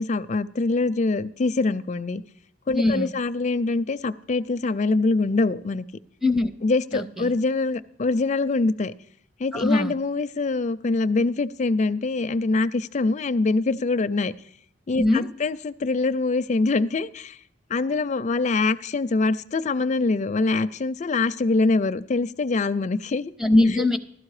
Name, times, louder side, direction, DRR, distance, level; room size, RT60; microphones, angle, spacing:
voice 1, 0.0-2.2 2.7-5.8 6.6-8.9 9.4-14.3 14.9-17.4 17.7-23.3, left 3 dB, 35° left, 0.4 m, -24 dB
voice 2, 2.7-3.1 6.2-6.5 6.9-7.3 9.5-10.0 15.0-15.3 23.4-24.0, left 2 dB, ahead, 0.7 m, -21 dB
15.5 x 12.5 x 4.9 m
head